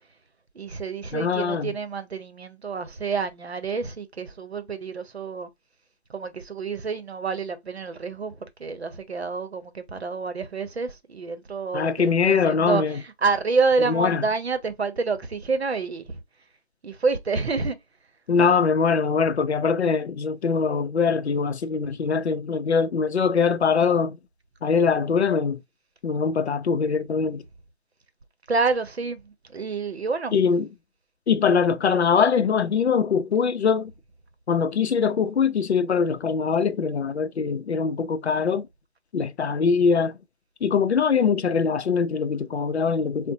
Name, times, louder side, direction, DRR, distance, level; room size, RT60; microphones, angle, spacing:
voice 1, 0.5-5.5 6.1-16.2 16.8-17.8 28.5-30.4, right 4 dB, 70° right, 0.7 m, -28 dB
voice 2, 1.1-1.7 11.7-13.0 13.9-14.2 18.3-24.2 24.6-25.6 26.0-27.4 30.3-30.7 31.3-33.9 34.5-38.7 39.1-40.2 40.6-43.3, left 5 dB, 80° left, 0.5 m, -22 dB
3.7 x 2.1 x 2.7 m
figure-of-eight pair, 175°, 33 cm